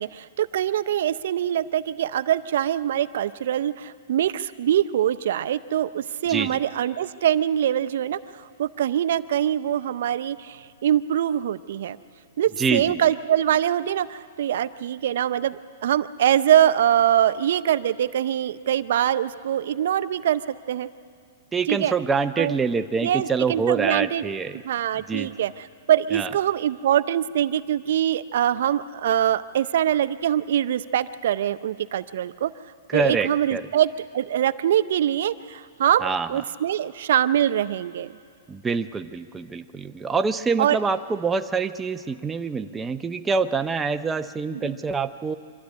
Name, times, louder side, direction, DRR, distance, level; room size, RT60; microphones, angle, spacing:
voice 1, 0.0-12.0 12.4-20.9 21.7-21.9 22.4-22.5 23.0-24.2 24.6-32.5 32.9-38.1 40.6-40.8 44.6-44.8, right 10 dB, 65° right, 13 dB, 0.5 m, -23 dB
voice 2, 6.3-6.6 12.6-13.0 21.5-24.6 25.1-25.3 26.1-26.3 32.9-33.6 36.0-36.3 38.5-45.4, right 5 dB, 10° right, 8 dB, 0.6 m, -25 dB
24.5 x 13.0 x 9.5 m, 2.2 s
hypercardioid pair, 150°, 0 cm